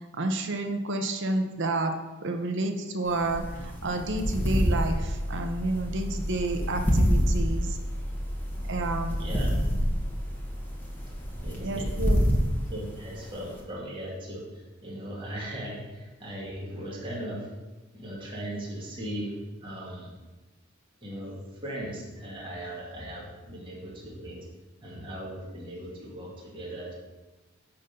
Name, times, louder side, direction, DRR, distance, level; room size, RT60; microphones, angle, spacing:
voice 1, 0.2-7.8 8.7-9.2 11.6-12.2, right 2 dB, 60° right, 5 dB, 1.0 m, -30 dB
sound 1, 3.1-13.6, equal, 10° left, 1.4 m, -28 dB
sound 2, 3.3-11.5, equal, 60° left, 1.7 m, -36 dB
voice 2, 9.2-9.5 11.1-11.9 12.7-17.6 17.9-19.3 19.6-20.1 21.0-21.4 21.6-24.5 24.8-26.9, right 1 dB, 25° right, -5 dB, 2.3 m, -38 dB
10.0 x 3.9 x 6.7 m, 1.1 s
head